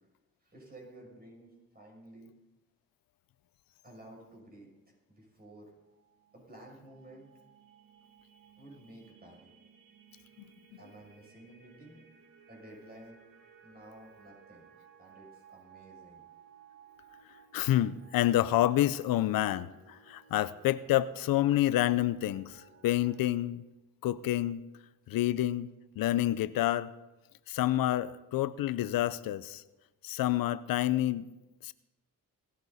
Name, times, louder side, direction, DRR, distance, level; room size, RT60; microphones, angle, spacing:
voice 1, 0.4-2.3 3.8-4.7 5.1-5.7 6.3-7.3 8.6-9.5 10.8-12.1 12.5-13.2 13.6-14.7 15.0-16.2, right 1 dB, 25° right, 6.8 m, -52 dB
sound 1, 5.8-23.2, right 6 dB, 85° right, 2.4 m, -59 dB
voice 2, 17.5-23.6 24.0-24.6 25.1-26.9 27.5-29.6 30.0-31.3 31.6-31.7, left 14 dB, 85° left, 0.6 m, -28 dB
17.5 x 14.0 x 4.1 m
cardioid pair, 80°, 34 cm